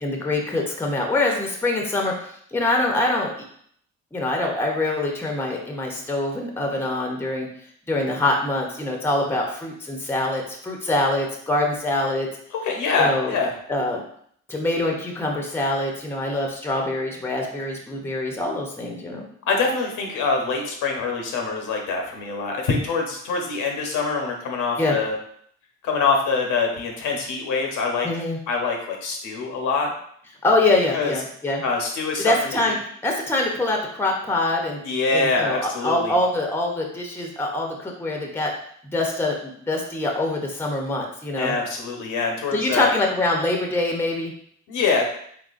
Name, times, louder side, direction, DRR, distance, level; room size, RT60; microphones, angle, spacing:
voice 1, 0.0-2.1 2.5-3.3 4.1-7.5 7.9-12.3 13.0-13.3 13.7-14.0 14.5-19.3 24.8-25.0 28.0-28.4 30.4-31.6 32.2-32.8 33.0-34.8 35.1-38.5 38.9-41.5 42.5-44.3, left 2 dB, 10° left, 1 dB, 0.6 m, -24 dB
voice 2, 12.5-13.5 19.5-25.1 25.8-28.1 28.5-29.9 30.9-31.1 31.6-32.7 34.8-36.1 41.4-42.9 44.7-45.0, left 4 dB, 85° left, 1 dB, 0.9 m, -24 dB
3.7 x 3.3 x 2.5 m, 0.65 s
cardioid pair, 90°, 30 cm